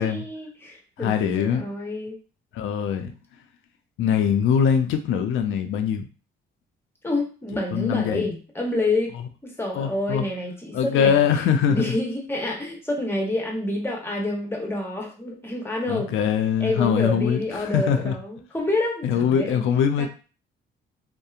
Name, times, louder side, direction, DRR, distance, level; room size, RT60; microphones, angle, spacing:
voice 1, 0.0-2.2 7.0-9.1 9.4-11.4 11.7-16.1 16.6-19.6 20.0-20.1, left 2 dB, 10° left, 0 dB, 0.9 m, -28 dB
voice 2, 1.0-1.7 2.5-3.1 4.0-6.1 7.7-8.3 9.7-10.3 10.7-12.0 15.9-18.1 19.0-20.1, left 7 dB, 75° left, 7 dB, 0.4 m, -22 dB
2.7 x 2.1 x 2.4 m, 0.35 s
supercardioid pair, 75°, 21 cm